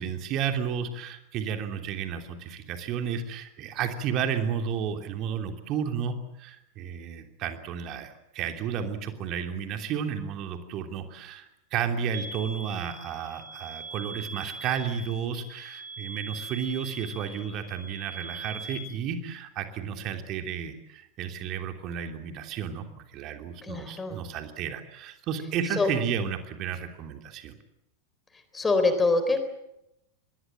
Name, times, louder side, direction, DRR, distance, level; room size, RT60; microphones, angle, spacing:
voice 1, 0.0-22.9 23.1-27.5, right 7 dB, 35° right, 5 dB, 3.1 m, -32 dB
sound 1, 12.1-18.7, right 3 dB, 65° right, 7.3 m, -41 dB
voice 2, 23.6-24.2 25.8-25.9 28.5-29.4, left 3 dB, 15° left, 9 dB, 4.0 m, -24 dB
26.0 x 21.5 x 7.6 m, 0.86 s
figure-of-eight pair, 90°, 0 cm